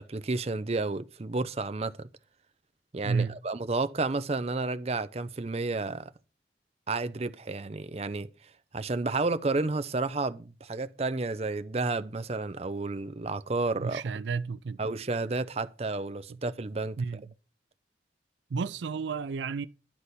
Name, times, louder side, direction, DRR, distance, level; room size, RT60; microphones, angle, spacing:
voice 1, 0.0-2.1 2.9-6.1 6.9-8.3 8.7-14.0 14.8-17.0, right 3 dB, 35° right, 0.6 m, -31 dB
voice 2, 3.0-3.4 13.8-14.8 17.0-17.2 18.5-19.7, right 5 dB, 85° right, 0.4 m, -31 dB
11.5 x 4.1 x 8.0 m
head